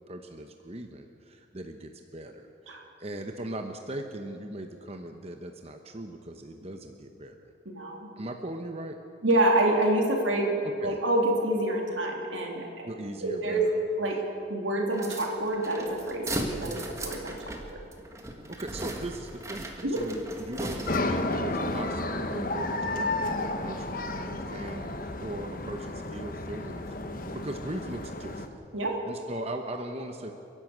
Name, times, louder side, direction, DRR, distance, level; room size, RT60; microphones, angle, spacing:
voice 1, 0.1-7.5 8.2-9.0 10.8-11.0 12.8-13.8 14.1-14.2 16.7-17.0 18.5-26.9 27.1-28.5 29.0-30.3, right 1 dB, 35° right, 5 dB, 1.0 m, -39 dB
voice 2, 7.6-8.1 9.2-10.5 10.8-12.9 13.2-13.6 14.0-14.2 14.5-16.8 17.0-17.4 19.8-20.0 28.7-28.9, right 1 dB, 85° right, 1 dB, 3.3 m, -27 dB
sound 1, 14.9-21.3, right 1 dB, 15° right, 1.6 m, -37 dB
sound 2, 20.9-28.5, left 2 dB, 45° left, 1.2 m, -32 dB
29.5 x 11.0 x 8.0 m, 2.8 s
head